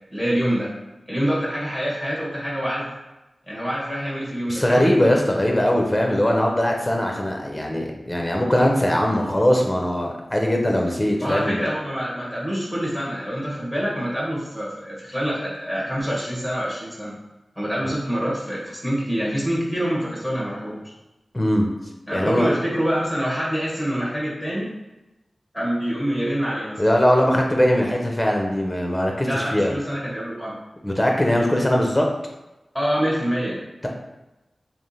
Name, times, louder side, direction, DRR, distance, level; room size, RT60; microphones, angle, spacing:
voice 1, 0.1-0.7 1.1-2.9 3.5-4.9 11.2-17.2 17.5-20.9 22.1-24.7 25.5-26.8 29.2-30.6 32.7-33.6, equal, 10° right, -6 dB, 1.5 m, -26 dB
voice 2, 4.5-11.7 17.8-17.9 21.3-21.7 22.1-22.5 26.8-29.7 30.8-32.1, equal, 10° left, 1 dB, 0.8 m, -20 dB
3.5 x 2.9 x 4.2 m, 1.0 s
wide cardioid pair, 80°, 0 cm